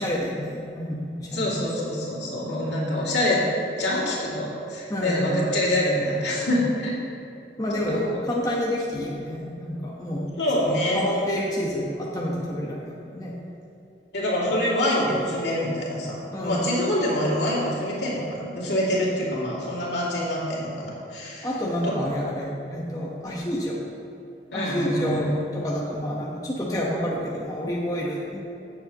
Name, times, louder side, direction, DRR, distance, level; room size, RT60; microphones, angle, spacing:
voice 1, 0.0-1.5 4.9-5.2 7.6-10.3 10.9-13.3 16.3-16.7 21.4-23.8 24.5-28.4, equal, 20° left, -4 dB, 1.0 m, -29 dB
voice 2, 1.3-3.4 3.8-6.9 7.7-8.2 10.4-11.0 14.1-21.5 21.8-22.1 24.5-25.4, left 1 dB, 80° left, -6 dB, 2.5 m, -25 dB
16.0 x 7.1 x 2.9 m, 2.6 s
head